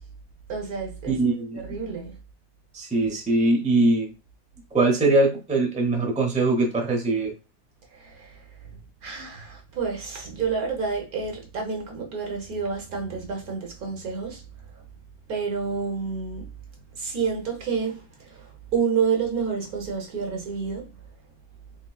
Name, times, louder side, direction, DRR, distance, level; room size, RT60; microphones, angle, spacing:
voice 1, 0.5-1.2 1.6-2.1 7.9-14.4 14.8-14.9 15.3-16.5 16.9-20.9, right 5 dB, 70° right, 1.5 m, -29 dB
voice 2, 1.1-1.9 2.7-4.1 4.7-7.3, right 2 dB, 5° right, 0.6 m, -22 dB
3.7 x 3.6 x 2.3 m
omnidirectional pair, 1.6 m